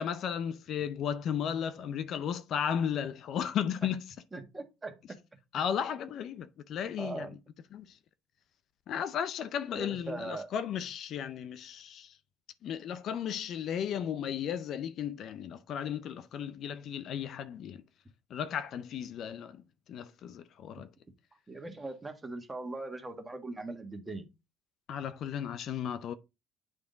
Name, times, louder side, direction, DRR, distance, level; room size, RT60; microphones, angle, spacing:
voice 1, 0.0-4.0 5.5-7.3 7.7-7.9 8.9-12.1 12.6-17.8 18.3-19.6 19.9-20.9 24.9-26.1, left 8 dB, 60° left, 0.5 m, -35 dB
voice 2, 4.3-5.2 7.0-7.4 9.7-10.5 21.5-24.3, right 2 dB, 20° right, 1.5 m, -40 dB
8.8 x 3.5 x 3.9 m
supercardioid pair, 80°, 0 cm